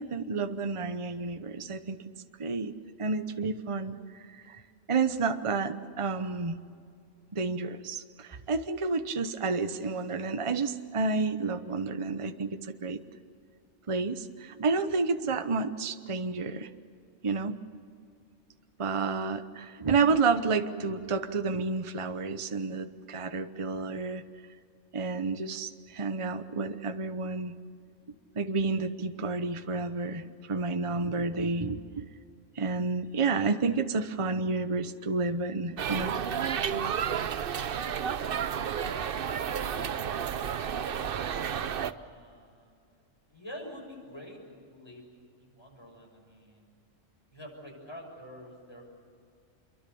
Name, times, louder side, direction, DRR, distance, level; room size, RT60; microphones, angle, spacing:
voice 1, 0.0-2.0 2.4-4.0 4.3-4.6 4.9-6.6 7.3-13.0 13.9-16.7 17.2-17.6 18.8-24.2 24.9-27.5 28.3-32.1 32.6-36.1, right 4 dB, 25° right, 9 dB, 0.9 m, -30 dB
sound 1, 35.8-41.9, right 8 dB, 50° right, 0.8 m, -31 dB
voice 2, 39.5-40.9 41.5-42.9 43.3-46.8 47.3-48.9, equal, 20° left, 0 dB, 6.7 m, -48 dB
27.0 x 23.0 x 7.0 m, 2.3 s
omnidirectional pair, 1.3 m